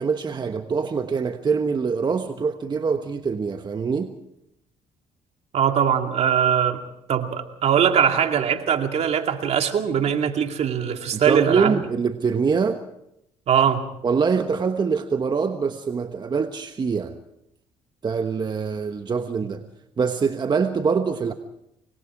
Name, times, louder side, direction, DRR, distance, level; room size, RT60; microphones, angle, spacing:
voice 1, 0.0-4.1 11.1-12.8 14.0-17.2 18.0-19.6 20.0-21.3, right 5 dB, 35° right, 7 dB, 1.3 m, -24 dB
voice 2, 5.5-6.8 7.1-11.8 13.5-13.8, right 8 dB, 60° right, 5 dB, 2.4 m, -21 dB
26.0 x 21.0 x 4.8 m, 0.82 s
supercardioid pair, 70°, 13 cm